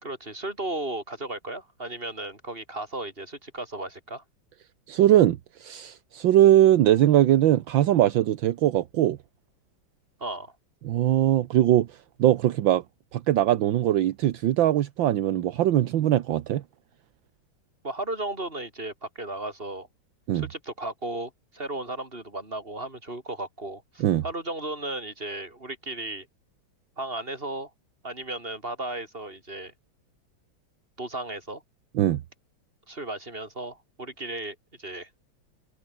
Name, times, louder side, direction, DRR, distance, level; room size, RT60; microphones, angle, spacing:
voice 1, 0.0-4.2 10.2-10.5 17.8-19.9 20.3-26.3 27.0-27.7 28.0-29.7 31.0-31.6 32.9-35.1, right 2 dB, 25° right, 5.5 m, -35 dB
voice 2, 4.9-9.2 10.8-11.9 12.2-12.8 13.1-16.6 20.3-20.5 24.0-24.2 32.0-32.2, right 12 dB, 70° right, 1.6 m, -21 dB
omnidirectional pair, 2.2 m